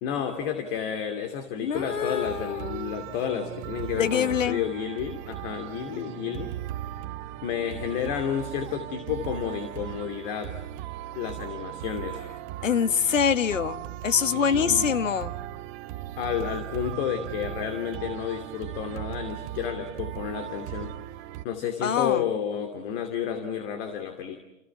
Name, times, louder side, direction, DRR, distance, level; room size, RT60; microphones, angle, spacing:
voice 1, 0.0-6.5 7.4-10.5 11.2-12.2 14.3-14.8 16.2-20.9 21.4-24.4, left 8 dB, 45° left, 7 dB, 2.8 m, -31 dB
voice 2, 1.6-2.9 4.0-4.6 12.6-15.3 21.8-22.2, left 7 dB, 70° left, 13 dB, 1.4 m, -25 dB
Singing cicadas in a starry summer night, 1.7-21.4, right 13 dB, 35° right, 1.1 m, -37 dB
30.0 x 29.0 x 6.0 m, 0.94 s
figure-of-eight pair, 110°, 40 cm